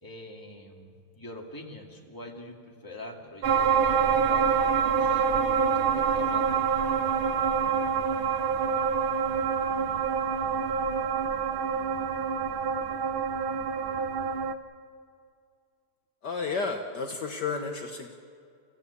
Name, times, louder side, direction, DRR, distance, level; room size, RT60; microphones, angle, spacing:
voice 1, 0.0-6.7, left 2 dB, 10° left, 0 dB, 2.3 m, -45 dB
sound 1, 3.4-14.5, right 6 dB, 85° right, 1.7 m, -26 dB
voice 2, 16.2-18.1, left 4 dB, 60° left, 4 dB, 1.7 m, -32 dB
28.0 x 15.5 x 8.3 m, 2.3 s
omnidirectional pair, 2.2 m